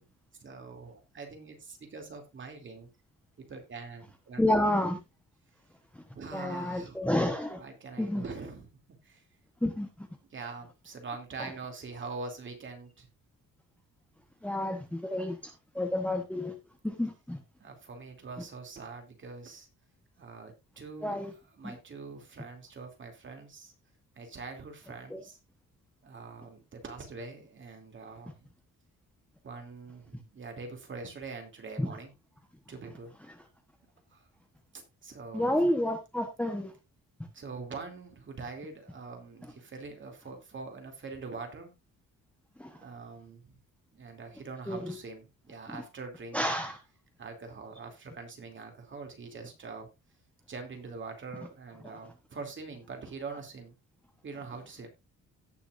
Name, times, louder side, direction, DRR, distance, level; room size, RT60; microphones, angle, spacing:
voice 1, 0.4-2.9 3.4-4.4 6.1-7.0 7.6-8.7 9.0-9.2 10.3-13.1 17.6-19.7 20.2-21.2 21.6-23.7 24.2-25.4 26.0-28.5 29.4-32.1 32.7-33.1 34.1-34.3 34.7-35.5 37.3-41.7 42.6-43.6 43.9-46.6 47.2-49.9 50.5-53.8 54.2-54.9, right 4 dB, 35° right, 2.7 m, -43 dB
voice 2, 4.4-5.0 6.3-7.6 8.0-8.2 9.6-9.9 14.4-15.4 15.7-16.5 16.8-17.4 21.0-21.3 21.6-21.7 25.1-25.2 31.8-31.9 35.3-36.7 42.6-42.7 44.7-44.9 46.3-46.8, left 1 dB, 5° left, 1.0 m, -29 dB
17.0 x 6.0 x 2.5 m
cardioid pair, 170°, 33 cm